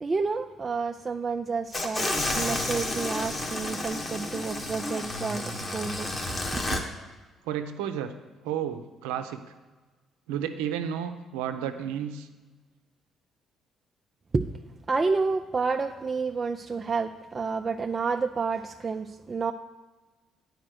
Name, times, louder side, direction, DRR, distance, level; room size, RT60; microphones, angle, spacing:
voice 1, 0.0-6.1 6.5-6.8 14.3-14.5 14.9-19.5, right 4 dB, 35° right, 5 dB, 0.4 m, -29 dB
sound 1, 1.7-6.8, left 2 dB, 35° left, 1.3 m, -31 dB
voice 2, 7.4-8.1 8.4-9.4 10.3-12.3, right 9 dB, 90° right, 8 dB, 0.6 m, -32 dB
8.9 x 5.0 x 6.2 m, 1.3 s
supercardioid pair, 65°, 0 cm